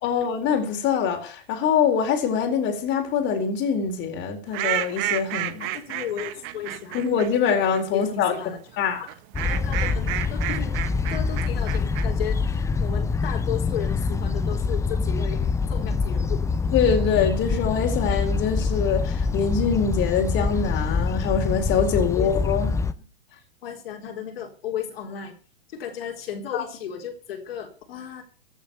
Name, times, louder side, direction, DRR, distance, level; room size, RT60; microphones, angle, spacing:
voice 1, 0.0-5.7 6.9-8.3 8.8-9.0 16.7-22.7 26.5-26.6, left 6 dB, 35° left, 4.3 m, -24 dB
sound 1, 4.5-7.8 9.1-12.0, right 14 dB, 40° right, 1.5 m, -30 dB
voice 2, 5.6-7.0 7.9-8.6 9.0-9.1 9.4-10.8 11.1-16.5 22.1-22.3 23.6-25.4 25.7-28.2, left 8 dB, 65° left, 4.1 m, -34 dB
sound 2, 9.3-22.9, left 4 dB, 10° left, 0.7 m, -25 dB
15.5 x 8.0 x 7.0 m
hypercardioid pair, 120°, 31 cm